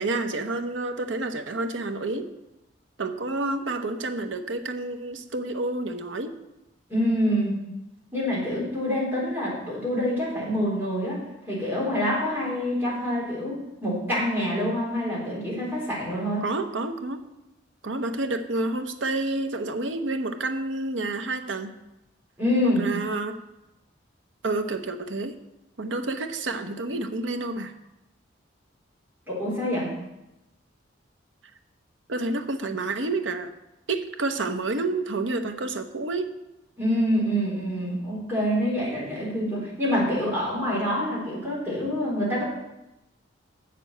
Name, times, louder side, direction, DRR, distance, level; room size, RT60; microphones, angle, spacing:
voice 1, 0.0-2.3 3.0-6.4 16.4-17.3 17.8-21.7 22.6-23.4 24.4-25.4 25.8-27.7 32.1-33.5 33.9-36.3, right 2 dB, 80° right, 7 dB, 0.8 m, -29 dB
voice 2, 6.9-7.5 8.1-11.2 11.5-16.4 22.4-22.8 29.3-29.9 36.8-42.4, equal, 10° right, -7 dB, 3.9 m, -26 dB
7.6 x 6.8 x 7.9 m, 0.94 s
head